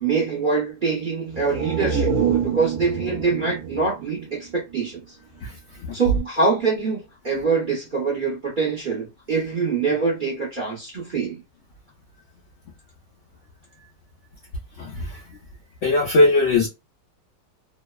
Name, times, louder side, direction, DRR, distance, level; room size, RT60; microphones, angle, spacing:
voice 1, 0.0-5.2 5.9-11.4, right 4 dB, 50° right, 0.6 m, -24 dB
sound 1, 1.3-5.0 5.4-5.5, right 6 dB, 70° right, 1.0 m, -27 dB
voice 2, 14.8-15.4 15.8-16.7, left 2 dB, 80° left, 0.6 m, -20 dB
2.8 x 2.0 x 2.3 m
omnidirectional pair, 1.8 m